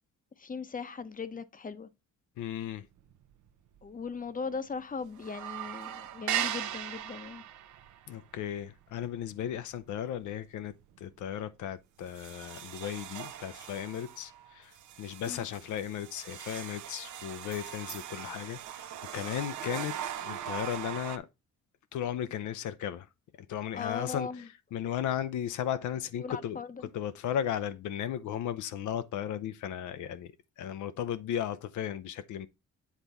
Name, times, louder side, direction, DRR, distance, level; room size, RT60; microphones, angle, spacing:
voice 1, 0.4-1.9 3.8-7.4 15.3-15.5 23.7-24.5 26.2-26.8, left 5 dB, 30° left, 0.7 m, -38 dB
voice 2, 2.4-2.9 8.1-21.3 21.9-23.1 23.5-24.4 24.7-26.6 26.9-32.5, left 10 dB, 75° left, 0.6 m, -35 dB
sound 1, 3.0-3.5 3.7-3.8 4.2-4.8 5.1-10.3 10.7-11.0 11.5-11.6 12.0-21.2, right 11 dB, 75° right, 0.7 m, -40 dB
8.2 x 3.5 x 4.0 m
cardioid pair, 90°, 30 cm